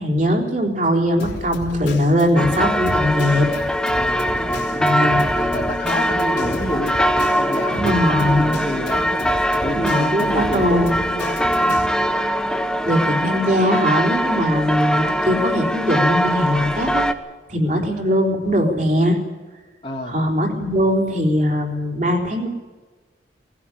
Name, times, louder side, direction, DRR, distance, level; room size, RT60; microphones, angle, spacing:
voice 1, 0.0-3.5 4.8-5.3 7.7-8.5 9.8-10.9 12.8-17.0 17.5-19.2 20.1-22.5, equal, 40° right, 2 dB, 4.0 m, -20 dB
Drum kit, 1.2-11.9, left 1 dB, 75° left, 3.8 m, -34 dB
sound 1, 2.4-17.1, equal, 5° left, 1.0 m, -22 dB
voice 2, 3.9-11.8 14.4-14.6 17.6-17.9 19.8-20.2, left 1 dB, 30° left, -3 dB, 2.8 m, -29 dB
20.5 x 16.0 x 10.0 m, 1.3 s
head